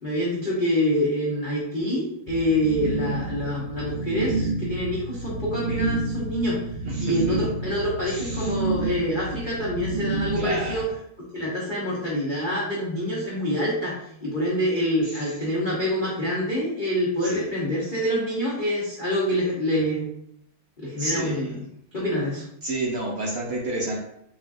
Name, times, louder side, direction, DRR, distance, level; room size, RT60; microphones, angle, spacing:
voice 1, 0.0-6.6 7.0-10.9 11.3-20.1 20.8-21.7 21.9-22.4, equal, 75° left, -7 dB, 0.4 m, -26 dB
sound 1, 2.3-10.8, right 3 dB, 85° right, 1.5 m, -29 dB
voice 2, 6.9-7.4 8.1-8.5 10.4-10.8 17.2-17.5 21.0-21.5 22.6-24.0, right 1 dB, 65° right, -3 dB, 0.9 m, -30 dB
5.4 x 2.3 x 2.5 m, 0.72 s
omnidirectional pair, 2.2 m